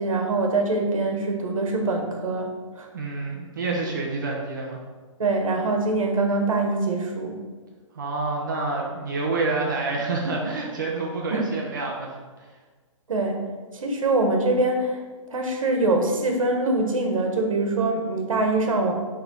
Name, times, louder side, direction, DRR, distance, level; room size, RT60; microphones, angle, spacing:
voice 1, 0.0-2.9 5.2-7.4 11.3-11.4 13.1-13.4 13.7-15.0 15.3-18.9, right 2 dB, 75° right, 3 dB, 1.4 m, -24 dB
voice 2, 2.9-4.8 7.9-12.5, right 3 dB, 35° right, -1 dB, 0.8 m, -28 dB
8.8 x 3.5 x 3.9 m, 1.4 s
hypercardioid pair, 175°, 17 cm